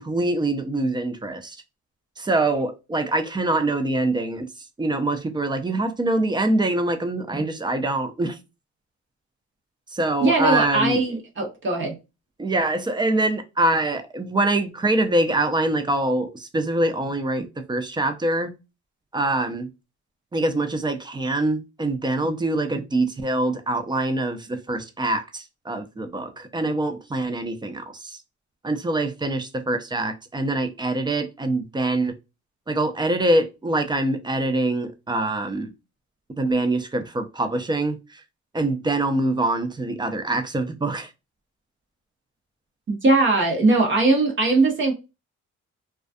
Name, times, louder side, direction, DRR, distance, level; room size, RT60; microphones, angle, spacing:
voice 1, 0.0-1.6 2.2-4.5 4.8-8.4 9.9-11.2 12.4-18.5 19.1-19.7 20.3-28.2 28.6-32.2 32.7-35.7 36.4-38.2 38.5-41.1, right 2 dB, 15° right, 0.4 m, -24 dB
voice 2, 10.2-11.9 42.9-44.9, right 2 dB, 40° right, 0.8 m, -20 dB
2.3 x 2.3 x 2.5 m
cardioid pair, 90°, 30 cm